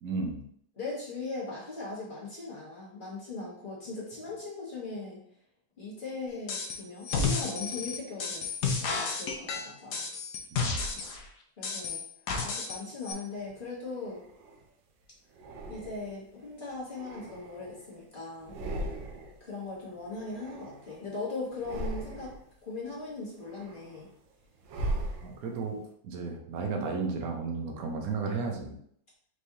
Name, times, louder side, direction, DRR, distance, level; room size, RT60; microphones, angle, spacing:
voice 1, 0.0-0.4 10.5-10.9 25.2-25.8 26.0-28.8, right 4 dB, 60° right, 2 dB, 1.1 m, -33 dB
voice 2, 0.8-5.2 5.8-10.1 11.6-12.1 12.4-14.2 15.7-18.5 19.4-22.3 22.6-24.1, left 3 dB, 30° left, -6 dB, 1.2 m, -39 dB
sound 1, 6.5-6.8 7.1-11.2 11.6-12.8 13.1-13.2, left 4 dB, 65° left, 0.9 m, -31 dB
sound 2, 13.5-14.7 15.3-16.3 16.8-18.0 18.3-19.5 19.7-21.1 21.5-22.5 23.0-25.7, right 1 dB, 85° right, 1.4 m, -39 dB
4.6 x 3.2 x 2.7 m, 0.67 s
omnidirectional pair, 2.0 m